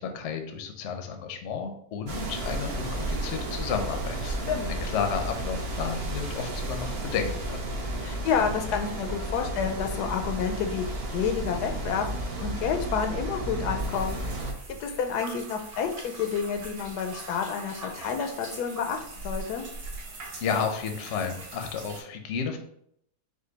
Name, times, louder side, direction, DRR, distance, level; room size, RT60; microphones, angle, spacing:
voice 1, 0.0-4.3 4.7-7.6 20.4-22.6, left 6 dB, 60° left, 5 dB, 0.8 m, -32 dB
sound 1, 2.1-14.5, right 1 dB, 50° right, 0.8 m, -33 dB
voice 2, 4.3-4.7 8.0-12.1 12.4-14.2 14.7-19.6, left 7 dB, 85° left, 5 dB, 1.2 m, -29 dB
sound 2, 13.8-22.0, right 2 dB, 70° right, 1.6 m, -41 dB
5.1 x 2.2 x 3.9 m, 0.69 s
omnidirectional pair, 1.7 m